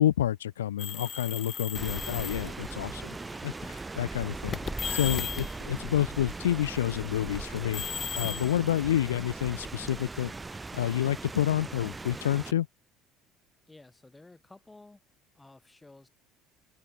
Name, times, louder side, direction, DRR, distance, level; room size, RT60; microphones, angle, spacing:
voice 1, 0.0-3.1 3.4-4.6 4.9-7.9 8.1-10.3 10.7-12.7, left 12 dB, 90° left, 0.8 m, -29 dB
sound 1, 0.8-2.5 3.4-3.7 4.5-5.6 7.3-9.4, left 7 dB, 40° left, 1.2 m, -36 dB
Rain, 1.7-12.5, right 3 dB, 20° right, 7.1 m, -39 dB
voice 2, 13.7-15.0 15.3-16.1, left 2 dB, 15° left, 7.9 m, -53 dB
open air
hypercardioid pair, 70°, 0 cm